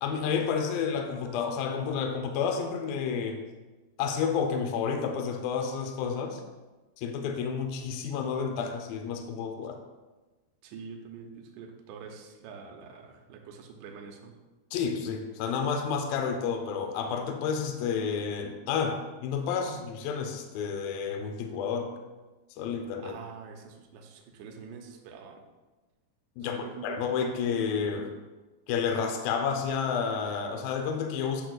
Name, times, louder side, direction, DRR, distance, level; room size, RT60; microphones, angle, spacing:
voice 1, 0.0-3.4 4.0-6.4 7.0-9.8 14.7-21.9 22.6-23.2 26.4-28.2 28.7-31.5, left 6 dB, 85° left, 4 dB, 2.1 m, -30 dB
voice 2, 10.6-14.4 23.0-25.4 26.4-27.0, right 6 dB, 80° right, 2 dB, 2.7 m, -45 dB
10.5 x 6.3 x 2.3 m, 1.2 s
omnidirectional pair, 5.1 m